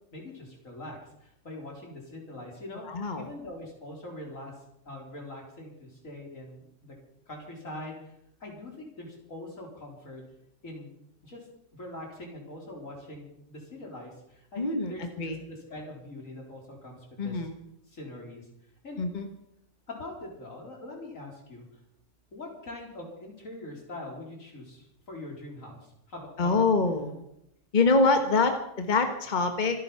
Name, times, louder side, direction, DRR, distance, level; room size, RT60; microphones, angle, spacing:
voice 1, 0.1-4.5 4.8-6.9 7.3-10.2 10.6-10.9 11.2-11.4 11.7-17.4 17.9-18.5 18.8-19.0 19.9-21.7 22.3-26.6, left 1 dB, 80° left, 0 dB, 4.7 m, -43 dB
voice 2, 2.9-3.3 14.6-15.4 17.2-17.5 19.0-19.3 26.4-27.2 27.7-29.8, left 3 dB, 35° left, 6 dB, 1.5 m, -25 dB
25.5 x 9.5 x 5.7 m, 0.77 s
omnidirectional pair, 1.4 m